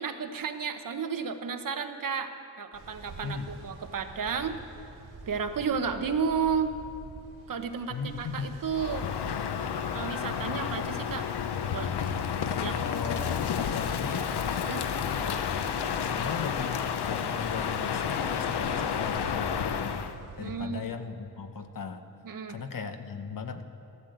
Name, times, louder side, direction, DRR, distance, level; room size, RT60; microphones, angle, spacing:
voice 1, 0.0-2.3 2.6-4.6 5.3-6.7 7.5-9.1 9.9-11.3 11.7-12.0 12.4-12.7 14.6-14.8 20.4-20.9 22.2-22.6, right 6 dB, 55° right, 7 dB, 1.0 m, -32 dB
Ocean, 2.7-20.6, right 3 dB, 85° right, 2.1 m, -47 dB
voice 2, 7.9-8.6 12.5-14.4 15.2-15.7 16.0-20.0 20.4-22.1 22.5-23.6, left 5 dB, 55° left, 8 dB, 1.0 m, -37 dB
Crow, 8.7-20.1, left 7 dB, 90° left, 0.8 m, -31 dB
13.5 x 12.5 x 7.9 m, 2.8 s
wide cardioid pair, 150°, 39 cm